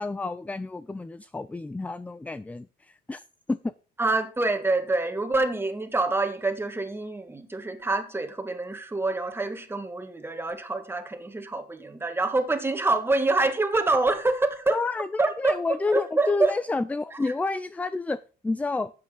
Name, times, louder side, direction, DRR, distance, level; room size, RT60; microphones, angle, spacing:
voice 1, 0.0-3.2 3.5-3.6 14.7-18.9, left 3 dB, 10° left, 0.4 m, -30 dB
voice 2, 4.0-14.8 15.2-15.6 15.9-16.5 17.1-17.3, right 2 dB, 15° right, 1.7 m, -26 dB
11.5 x 8.2 x 3.9 m
cardioid pair, 110°, 17 cm